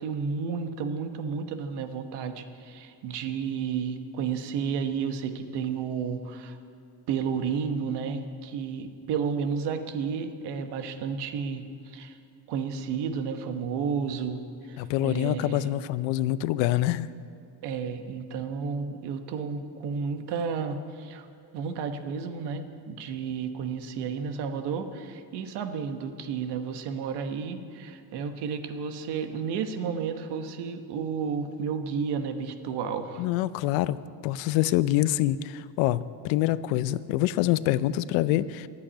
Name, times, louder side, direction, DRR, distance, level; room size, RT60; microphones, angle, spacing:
voice 1, 0.0-6.6 7.1-12.2 12.5-14.4 14.7-15.7 17.6-21.3 21.5-33.2, right 6 dB, 65° right, 8 dB, 1.2 m, -32 dB
voice 2, 14.8-17.1 33.2-34.0 34.2-38.7, left 14 dB, 90° left, 16 dB, 0.6 m, -25 dB
13.0 x 8.4 x 9.9 m, 2.3 s
cardioid pair, 155°, 44 cm